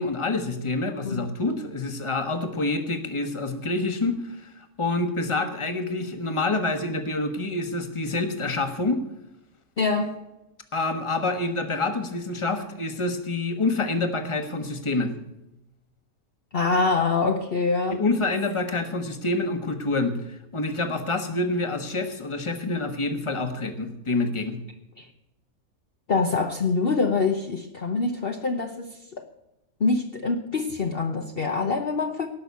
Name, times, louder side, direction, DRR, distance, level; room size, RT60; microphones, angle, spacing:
voice 1, 0.0-9.0 10.7-15.1 18.0-24.6, left 2 dB, 20° left, 7 dB, 1.3 m, -27 dB
voice 2, 9.8-10.2 16.5-18.0 25.0-25.1 26.1-29.3 29.8-32.3, left 4 dB, 45° left, 3 dB, 1.1 m, -25 dB
18.5 x 6.1 x 8.3 m, 0.90 s
omnidirectional pair, 1.6 m